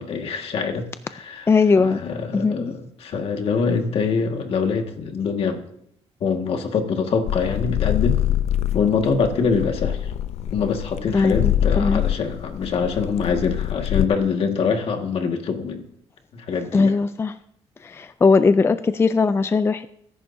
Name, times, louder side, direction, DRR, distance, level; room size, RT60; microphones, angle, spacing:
voice 1, 0.0-1.5 1.8-5.7 6.2-8.2 8.7-10.1 10.5-15.9 16.3-16.9, left 5 dB, 60° left, 4 dB, 1.8 m, -24 dB
voice 2, 1.5-2.0 2.3-2.7 11.1-12.0 16.7-17.4 17.8-19.9, left 4 dB, 25° left, 12 dB, 0.4 m, -19 dB
sound 1, 7.3-14.1, left 11 dB, 85° left, 0.6 m, -24 dB
22.0 x 11.0 x 2.7 m, 0.72 s
cardioid pair, 135°, 11 cm